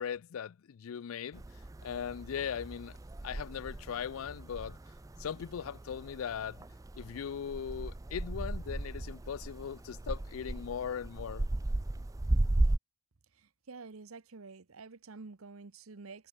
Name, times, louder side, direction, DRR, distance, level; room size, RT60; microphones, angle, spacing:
voice 1, 0.0-1.4 1.8-3.0 3.2-4.8 5.2-6.7 6.9-11.5, left 8 dB, 80° left, 0.4 m, -39 dB
sound 1, 1.3-12.8, right 2 dB, 15° right, 0.4 m, -36 dB
voice 2, 13.4-16.3, right 4 dB, 85° right, 0.9 m, -49 dB
head